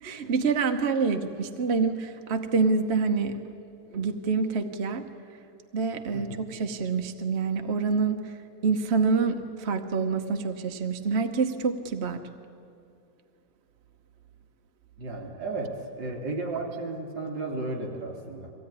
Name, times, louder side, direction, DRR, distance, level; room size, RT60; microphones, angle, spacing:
voice 1, 0.0-3.4 3.9-5.0 5.7-8.4 8.6-12.2, right 4 dB, 45° right, 5 dB, 1.0 m, -27 dB
voice 2, 15.0-18.5, right 2 dB, 65° right, 1 dB, 4.0 m, -34 dB
22.5 x 16.5 x 9.8 m, 2.6 s
omnidirectional pair, 2.0 m